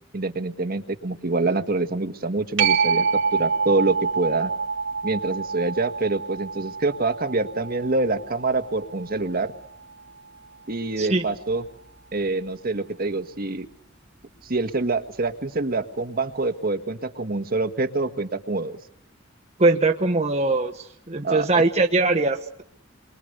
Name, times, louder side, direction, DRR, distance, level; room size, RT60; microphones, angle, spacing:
voice 1, 0.1-4.5 5.0-9.5 10.7-11.6 12.1-13.7 14.4-18.8 21.2-21.6, right 3 dB, 50° right, 8 dB, 1.6 m, -26 dB
sound 1, 2.6-9.7 15.3-15.4, right 5 dB, 65° right, 3.2 m, -27 dB
voice 2, 19.6-22.6, right 3 dB, 35° right, 2 dB, 1.3 m, -21 dB
29.5 x 23.5 x 6.7 m, 0.73 s
head